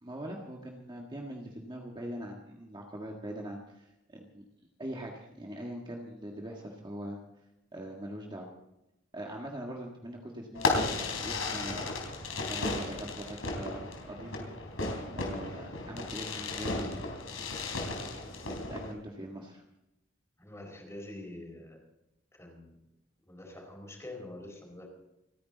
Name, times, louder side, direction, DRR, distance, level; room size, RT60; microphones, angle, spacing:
voice 1, 0.0-4.4 4.8-7.2 7.7-8.5 9.1-11.9 12.5-14.5 15.1-17.1 18.1-19.6, right 1 dB, 25° right, 0 dB, 1.7 m, -42 dB
Fireworks, 10.5-18.9, left 3 dB, 85° left, 3.8 m, -34 dB
voice 2, 20.4-21.8 22.4-22.7 23.3-24.9, left 1 dB, 15° left, 1 dB, 4.7 m, -45 dB
29.5 x 10.0 x 4.0 m, 0.90 s
head